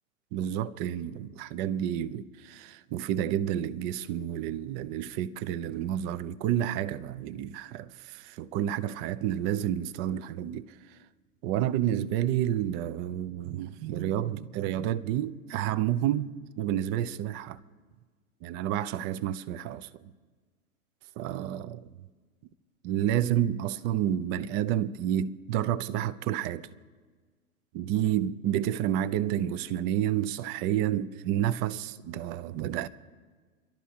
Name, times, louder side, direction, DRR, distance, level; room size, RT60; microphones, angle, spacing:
voice 1, 0.3-10.7 11.4-17.6 18.4-19.9 21.2-21.8 22.8-26.7 27.7-32.9, right 11 dB, 25° right, 0.4 m, -30 dB
29.5 x 12.0 x 2.9 m
figure-of-eight pair, 100°, 42 cm